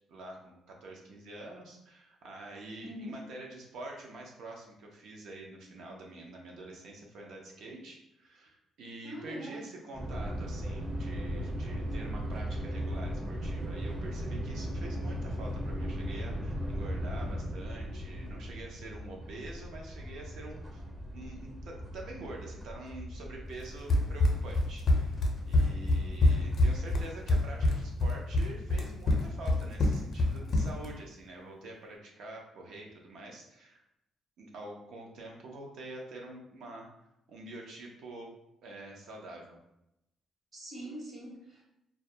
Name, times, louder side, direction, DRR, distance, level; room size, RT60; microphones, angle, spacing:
voice 1, 0.1-20.8 21.1-33.8 34.4-36.9 37.3-38.3 38.6-39.6, right 2 dB, 80° right, 0 dB, 0.5 m, -46 dB
voice 2, 2.8-3.2 9.0-9.6 25.6-26.1 40.5-41.7, equal, 50° right, -3 dB, 1.0 m, -43 dB
sound 1, 9.9-27.1, equal, 35° right, 0.6 m, -38 dB
Run, 23.9-30.9, left 2 dB, 55° left, 0.4 m, -26 dB
2.2 x 2.1 x 2.7 m, 0.85 s
cardioid pair, 90°, 0 cm